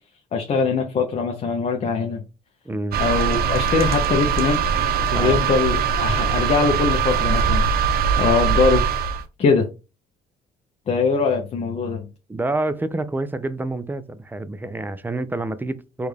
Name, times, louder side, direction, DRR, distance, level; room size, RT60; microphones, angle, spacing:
voice 1, 0.3-2.2 3.0-4.6 5.1-7.7 8.2-8.8 9.4-9.7 10.9-12.1, left 4 dB, 40° left, 0.7 m, -22 dB
voice 2, 2.7-3.0 5.1-5.4 12.3-16.1, right 2 dB, 10° right, 0.3 m, -27 dB
sound 1, 2.9-9.2, right 6 dB, 65° right, 0.6 m, -21 dB
4.5 x 2.4 x 3.3 m
cardioid pair, 110°, 17 cm